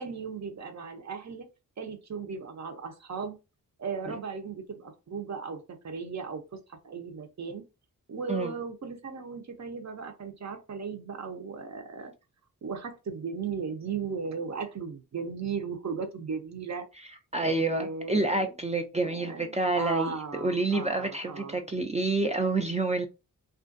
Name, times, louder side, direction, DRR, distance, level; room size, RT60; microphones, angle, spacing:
voice 1, 0.0-1.5 1.8-3.4 3.8-7.6 8.1-12.1 12.6-17.1 17.4-18.5 19.0-21.7, right 5 dB, 50° right, 0.7 m, -36 dB
voice 2, 17.3-23.1, right 2 dB, 20° right, 0.3 m, -28 dB
2.4 x 2.2 x 2.5 m
cardioid pair, 55°, 36 cm